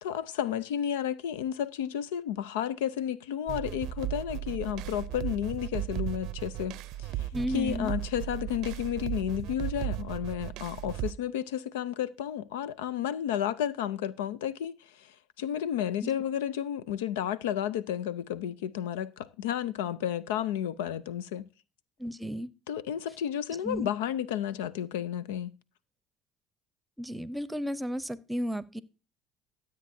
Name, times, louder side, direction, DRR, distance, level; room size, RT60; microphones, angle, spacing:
voice 1, 0.0-7.3 7.5-21.4 22.7-25.5, left 10 dB, 90° left, 0.5 m, -32 dB
sound 1, 3.5-11.1, right 14 dB, 70° right, 0.5 m, -36 dB
voice 2, 7.3-7.9 16.0-16.1 22.0-22.5 23.6-23.9 27.0-28.8, equal, 10° right, 0.8 m, -33 dB
13.5 x 7.7 x 2.6 m
hypercardioid pair, 70°, 0 cm